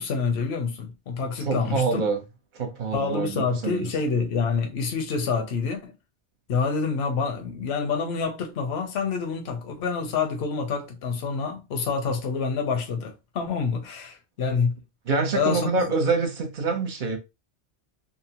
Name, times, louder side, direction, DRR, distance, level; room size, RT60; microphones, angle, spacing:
voice 1, 0.0-2.0 2.9-5.9 6.5-14.8 15.3-15.9, left 5 dB, 70° left, 0.9 m, -27 dB
voice 2, 1.4-2.2 2.5-3.9 15.1-17.2, right 4 dB, 55° right, 0.8 m, -26 dB
2.7 x 2.1 x 2.8 m
omnidirectional pair, 1.1 m